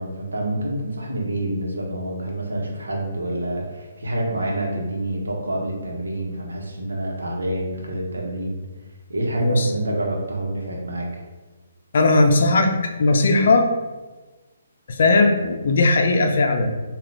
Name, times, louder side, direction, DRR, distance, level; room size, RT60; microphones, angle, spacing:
voice 1, 0.0-8.6 9.1-11.2, right 1 dB, 80° right, -1 dB, 0.9 m, -27 dB
voice 2, 9.4-9.7 11.9-12.7 13.0-13.7 14.9-16.7, left 2 dB, 60° left, 4 dB, 0.5 m, -17 dB
3.7 x 2.3 x 3.4 m, 1.2 s
hypercardioid pair, 140°, 0 cm